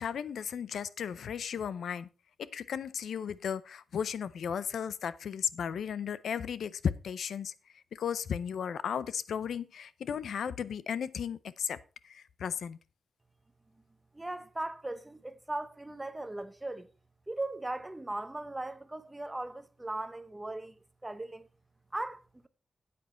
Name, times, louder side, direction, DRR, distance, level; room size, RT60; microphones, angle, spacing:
voice 1, 0.0-2.1 2.5-7.5 7.9-11.8 12.0-12.8, left 7 dB, 85° left, 0.5 m, -35 dB
voice 2, 14.1-16.9 17.3-21.5 21.9-22.5, right 2 dB, 10° right, 0.7 m, -38 dB
9.4 x 8.5 x 4.3 m
wide cardioid pair, 170°, 0 cm